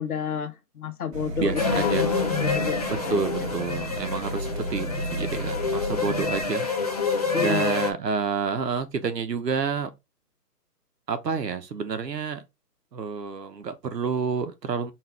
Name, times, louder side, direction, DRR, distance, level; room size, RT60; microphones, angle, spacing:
voice 1, 0.0-2.1 2.4-3.5 7.3-7.8, left 7 dB, 60° left, 1.1 m, -31 dB
sound 1, 1.1-6.5, right 1 dB, 20° right, 2.1 m, -33 dB
voice 2, 1.4-2.1 3.1-6.7 7.4-9.9 11.1-12.4 12.9-14.9, right 5 dB, 85° right, 1.2 m, -29 dB
sound 2, 1.6-7.9, left 4 dB, 25° left, 0.5 m, -27 dB
4.7 x 3.1 x 3.4 m
hypercardioid pair, 160°, 48 cm